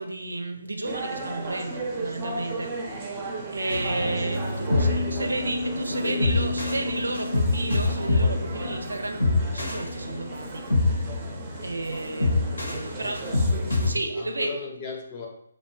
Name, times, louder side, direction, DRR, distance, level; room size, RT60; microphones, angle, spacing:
voice 1, 0.0-2.7 3.5-10.6 10.9-11.2 11.6-13.4 13.7-14.5, right 2 dB, 80° right, 5 dB, 0.4 m, -32 dB
sound 1, 0.8-13.9, right 2 dB, 25° right, 0.5 m, -36 dB
sound 2, 3.7-13.9, left 2 dB, 80° left, 1.0 m, -26 dB
voice 2, 4.7-7.4 12.8-13.3 13.8-15.3, left 4 dB, 30° left, 0 dB, 0.6 m, -39 dB
2.5 x 2.1 x 3.1 m, 0.72 s
figure-of-eight pair, 145°, 0 cm